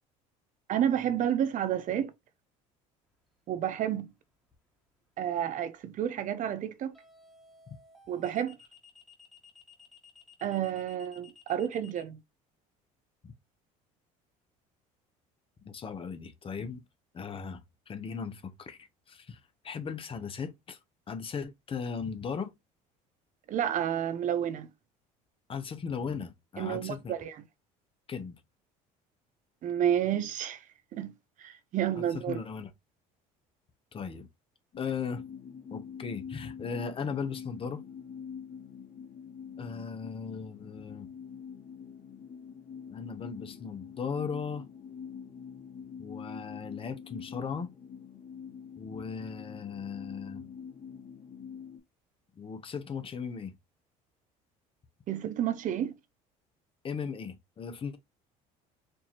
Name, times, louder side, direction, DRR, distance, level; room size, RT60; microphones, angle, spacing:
voice 1, 0.7-2.1 3.5-4.1 5.2-6.9 8.1-8.6 10.4-12.2 23.5-24.7 26.6-27.4 29.6-30.6 30.9-31.1 31.4-32.4 55.1-55.9, right 10 dB, 50° right, 0.6 m, -30 dB
sound 1, 3.6-4.0 6.9-12.0, left 5 dB, ahead, 1.4 m, -56 dB
voice 2, 15.6-16.8 17.1-17.6 17.9-20.8 21.1-22.5 25.5-27.1 28.1-28.3 32.0-32.7 33.9-34.3 34.8-35.2 35.7-37.8 39.6-41.1 42.9-44.6 46.0-47.7 48.8-50.4 52.4-53.5 56.8-58.0, left 6 dB, 35° left, 0.9 m, -37 dB
sound 2, 34.7-51.8, left 7 dB, 55° left, 1.9 m, -45 dB
4.5 x 2.7 x 3.0 m
supercardioid pair, 95°, 17 cm